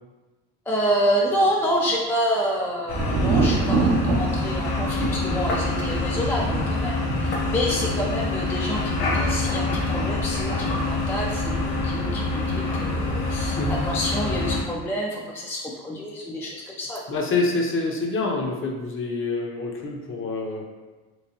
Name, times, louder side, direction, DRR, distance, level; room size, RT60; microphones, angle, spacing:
voice 1, 0.7-17.0, equal, 5° left, -3 dB, 0.3 m, -28 dB
sound 1, 2.9-14.6, left 2 dB, 85° left, 0.9 m, -26 dB
Thunder, 3.0-12.6 12.9-13.6, right 3 dB, 65° right, 0.7 m, -29 dB
voice 2, 17.1-20.7, left 3 dB, 35° left, 1 dB, 0.6 m, -26 dB
3.1 x 3.0 x 2.8 m, 1.2 s
supercardioid pair, 90°, 39 cm